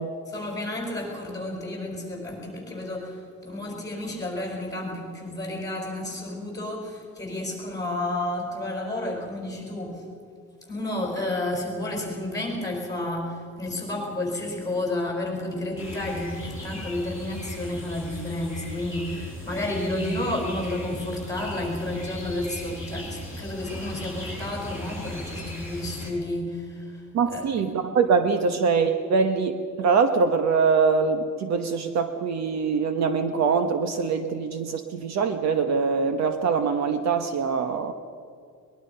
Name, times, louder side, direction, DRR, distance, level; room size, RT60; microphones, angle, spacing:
voice 1, 0.3-10.1 10.7-27.5 28.4-28.5, left 1 dB, 10° left, 0 dB, 5.0 m, -31 dB
sound 1, 15.8-26.1, left 1 dB, 5° right, 6.6 m, -37 dB
voice 2, 27.1-37.9, right 5 dB, 50° right, 8 dB, 1.2 m, -23 dB
22.5 x 20.5 x 5.6 m, 2.2 s
cardioid pair, 175°, 34 cm